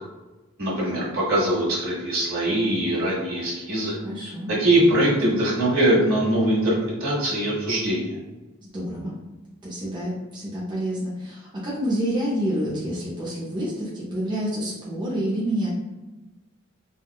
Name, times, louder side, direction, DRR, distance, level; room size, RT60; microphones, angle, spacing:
voice 1, 0.6-4.0 4.5-8.2, right 1 dB, 70° right, -6 dB, 1.4 m, -22 dB
voice 2, 4.0-4.5 8.6-9.2 9.6-15.7, equal, 20° right, -7 dB, 0.5 m, -28 dB
3.4 x 2.1 x 2.2 m, 1.1 s
head